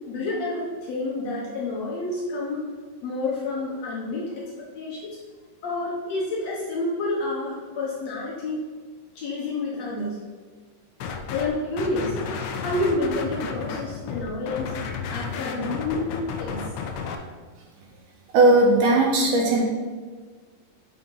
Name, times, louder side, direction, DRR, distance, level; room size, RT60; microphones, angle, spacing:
voice 1, 0.1-2.7 3.0-4.4 4.7-5.1 5.6-8.7 9.2-10.2 11.3-12.1 12.6-14.7 14.9-16.6, left 2 dB, 65° left, -5 dB, 1.8 m, -29 dB
sound 1, 11.0-11.5 11.8-17.2, left 5 dB, 85° left, 1.6 m, -32 dB
voice 2, 18.3-19.6, right 2 dB, 70° right, -1 dB, 2.3 m, -17 dB
6.3 x 4.2 x 5.5 m, 1.5 s
omnidirectional pair, 3.9 m